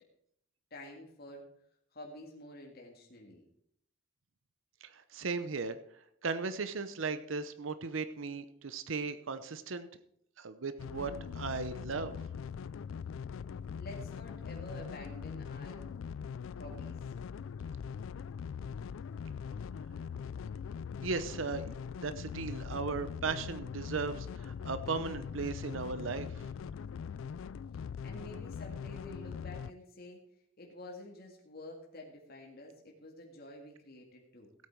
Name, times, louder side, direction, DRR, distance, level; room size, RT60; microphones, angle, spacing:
voice 1, 0.7-1.5 1.9-3.4 13.8-15.9 16.6-17.0 28.0-30.2 30.6-34.5, left 1 dB, 50° left, -1 dB, 2.0 m, -49 dB
voice 2, 4.8-5.8 6.2-9.9 10.4-12.2 21.0-21.6 22.0-26.3, right 4 dB, 80° right, 12 dB, 0.8 m, -36 dB
sound 1, 10.8-29.7, left 6 dB, 90° left, 0.3 m, -42 dB
16.5 x 8.5 x 4.6 m, 0.69 s
head